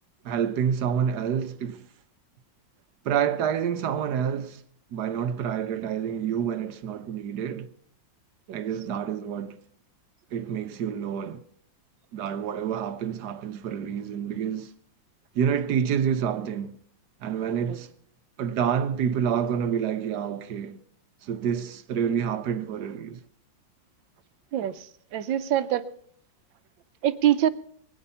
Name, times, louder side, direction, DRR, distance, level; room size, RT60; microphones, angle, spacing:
voice 1, 0.2-1.8 3.0-4.6 4.9-7.7 8.5-9.6 10.3-11.4 12.1-14.7 15.3-16.8 17.2-17.9 18.4-20.8 21.2-23.2, right 8 dB, 65° right, 1.3 m, -28 dB
voice 2, 24.5-25.8 27.0-27.5, right 11 dB, 80° right, 1.5 m, -25 dB
22.0 x 9.0 x 5.5 m
omnidirectional pair, 2.0 m